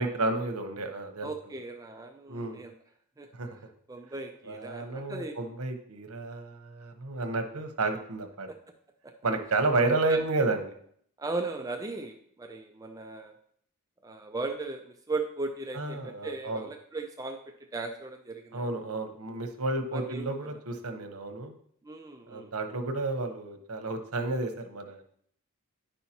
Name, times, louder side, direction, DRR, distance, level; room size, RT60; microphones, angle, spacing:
voice 1, 0.0-1.3 2.3-2.6 3.4-3.5 4.4-8.5 9.2-10.7 15.7-16.7 18.5-21.5 22.3-25.0, right 2 dB, 80° right, 6 dB, 1.0 m, -31 dB
voice 2, 1.2-2.7 3.2-3.3 3.9-5.4 8.5-8.6 9.0-9.1 10.1-10.5 11.2-13.4 14.0-17.4 17.7-18.7 19.9-20.6 21.8-22.5, right 3 dB, 15° right, 5 dB, 0.4 m, -37 dB
10.0 x 5.5 x 2.9 m, 0.65 s
head